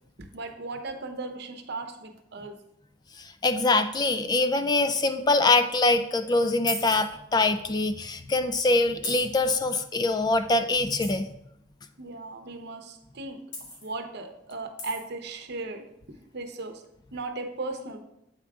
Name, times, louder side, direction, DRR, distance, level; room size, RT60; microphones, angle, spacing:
voice 1, 0.2-2.6 12.0-16.8 17.1-18.0, right 3 dB, 60° right, 6 dB, 0.8 m, -37 dB
voice 2, 3.2-11.3, left 2 dB, 20° left, 9 dB, 0.3 m, -24 dB
sound 1, 6.7-7.0 8.0-8.2 9.0-9.3 11.0-11.2 13.5-13.9 14.8-15.0, left 2 dB, 65° left, 2.0 m, -34 dB
8.1 x 4.8 x 3.5 m, 0.82 s
head